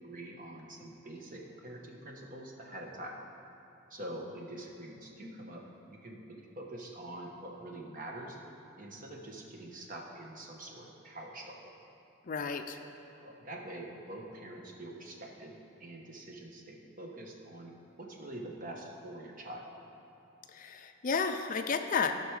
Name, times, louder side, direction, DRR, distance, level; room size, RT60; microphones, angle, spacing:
voice 1, 0.0-3.1 3.9-8.4 8.8-11.7 13.1-15.5 15.8-17.7 18.0-19.7, right 1 dB, 45° right, 0 dB, 1.2 m, -45 dB
voice 2, 12.3-12.8 20.5-22.1, left 5 dB, 40° left, 7 dB, 0.4 m, -32 dB
15.0 x 6.0 x 4.8 m, 2.9 s
head